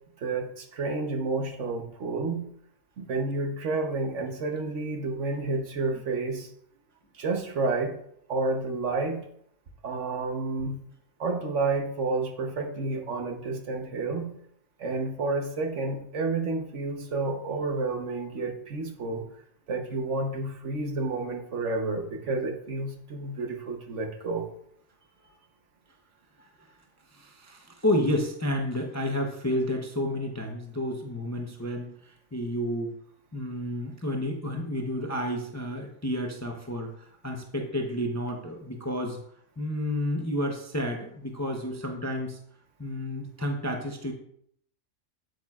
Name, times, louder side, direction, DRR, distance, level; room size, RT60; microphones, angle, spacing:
voice 1, 0.2-2.5 3.0-6.5 7.1-8.0 8.3-9.2 9.8-10.8 11.2-14.3 14.8-19.2 19.7-24.5, right 3 dB, 65° right, 3 dB, 1.3 m, -30 dB
voice 2, 27.1-32.9 33.3-39.2 39.6-42.4 42.8-44.1, left 1 dB, 20° left, 2 dB, 0.5 m, -31 dB
8.7 x 7.9 x 2.4 m, 0.69 s
omnidirectional pair, 1.4 m